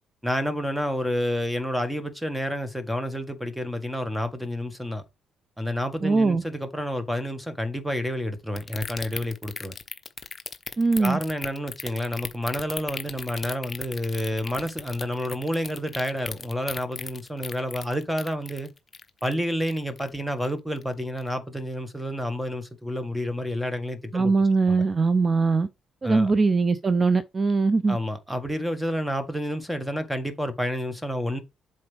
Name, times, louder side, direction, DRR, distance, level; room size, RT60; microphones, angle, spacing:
voice 1, 0.2-5.0 5.6-9.7 11.0-18.7 19.2-24.3 24.7-24.8 26.0-26.3 27.9-31.4, equal, ahead, 1.7 m, -29 dB
voice 2, 6.0-6.4 10.8-11.2 24.1-25.7 26.0-28.0, right 4 dB, 30° right, 0.5 m, -21 dB
sound 1, 8.6-20.2 20.4-20.8 21.2-21.3, left 4 dB, 30° left, 1.1 m, -36 dB
7.8 x 5.2 x 3.4 m
cardioid pair, 90°, 0 cm